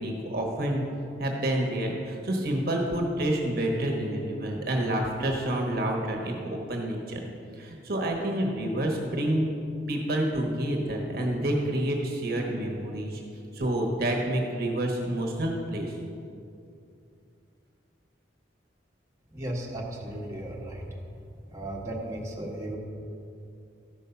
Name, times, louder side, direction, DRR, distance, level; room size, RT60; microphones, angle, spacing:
voice 1, 0.0-0.8 1.2-7.2 7.6-9.5 9.9-13.2 13.5-15.9, right 1 dB, 55° right, 0 dB, 1.2 m, -28 dB
voice 2, 19.3-21.0 21.5-22.8, right 1 dB, 15° right, -4 dB, 1.4 m, -35 dB
13.0 x 5.4 x 5.7 m, 2.6 s
head